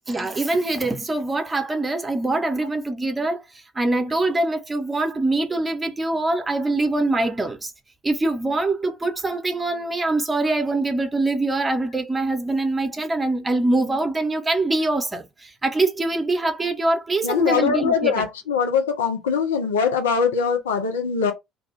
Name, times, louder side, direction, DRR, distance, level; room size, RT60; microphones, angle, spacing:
voice 1, 0.1-7.7 8.0-18.3, right 2 dB, 20° right, 0.8 m, -24 dB
voice 2, 17.2-21.3, left 6 dB, 75° left, 0.6 m, -22 dB
2.6 x 2.2 x 3.2 m
figure-of-eight pair, 55°, 0 cm